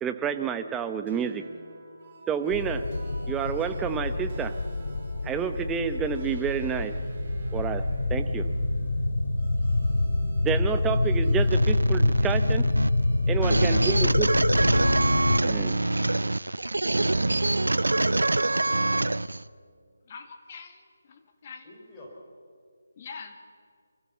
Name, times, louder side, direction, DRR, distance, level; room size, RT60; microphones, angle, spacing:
voice 1, 0.0-1.4 2.3-2.8 3.3-4.5 5.2-6.9 7.5-7.8 8.1-8.5 10.4-12.6 13.3-14.3 15.4-15.8, right 7 dB, 10° right, 8 dB, 0.8 m, -29 dB
sound 1, 1.1-13.6, right 4 dB, 35° right, 5.9 m, -45 dB
sound 2, 2.5-15.4, left 2 dB, 80° left, 0.8 m, -26 dB
sound 3, 11.5-19.4, right 2 dB, 85° right, 0.5 m, -25 dB
voice 2, 13.4-14.6 17.8-18.8 21.6-22.2, left 1 dB, 20° left, -3 dB, 4.3 m, -44 dB
voice 3, 20.1-21.7 23.0-23.4, left 5 dB, 35° left, 6 dB, 1.9 m, -44 dB
24.0 x 15.0 x 7.2 m, 2.1 s
figure-of-eight pair, 155°, 0 cm